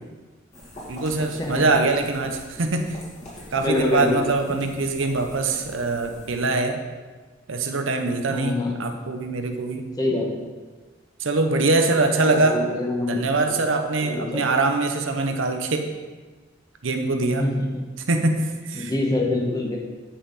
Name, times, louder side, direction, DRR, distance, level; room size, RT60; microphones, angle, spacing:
sound 1, 0.5-6.4, equal, 35° left, 2.4 m, -42 dB
voice 1, 0.9-3.0 3.5-6.8 7.5-9.9 11.2-12.6 13.1-15.9 16.8-17.4 18.1-18.9, right 3 dB, 90° right, 5 dB, 0.8 m, -23 dB
voice 2, 3.6-4.2 8.3-8.8 10.0-10.4 12.3-13.6 14.0-14.4 17.2-17.8 18.7-19.8, left 2 dB, 20° left, -1 dB, 1.3 m, -25 dB
9.8 x 5.7 x 4.1 m, 1.3 s
head